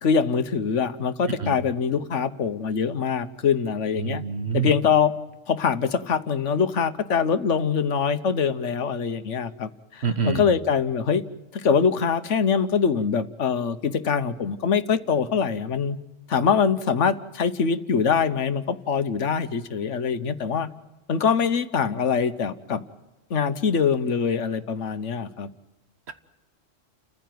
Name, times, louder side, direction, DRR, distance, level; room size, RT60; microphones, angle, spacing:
voice 1, 0.0-4.2 4.5-5.1 5.5-11.2 11.5-16.0 16.3-20.7 21.1-22.8 23.3-25.5, left 6 dB, 75° left, 11 dB, 1.4 m, -23 dB
voice 2, 3.9-4.7 10.0-10.5, right 6 dB, 60° right, 9 dB, 1.6 m, -26 dB
30.0 x 15.0 x 9.4 m, 1.1 s
omnidirectional pair, 1.3 m